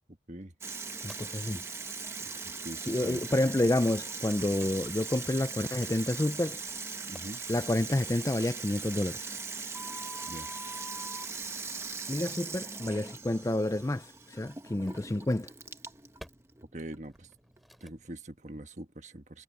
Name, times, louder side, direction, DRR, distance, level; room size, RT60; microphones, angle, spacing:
Water tap faucet / Sink (filling or washing), 0.6-18.1, right 4 dB, 15° right, 1.0 m, -40 dB
voice 1, 1.0-1.6 2.8-6.6 7.5-9.3 12.1-15.5, left 1 dB, 20° left, 0.4 m, -29 dB
sound 1, 1.1-1.2 3.5-3.6 4.6-4.7 5.5-5.9 6.8-7.2 9.7-11.3 13.6-13.7 14.9-15.1 16.2-16.3 17.1-17.3 17.6-17.9, equal, ahead, 3.2 m, -45 dB
voice 2, 2.6-3.2 7.1-7.4 10.3-10.5 16.7-17.3 17.8-19.4, right 1 dB, 40° right, 1.5 m, -43 dB
head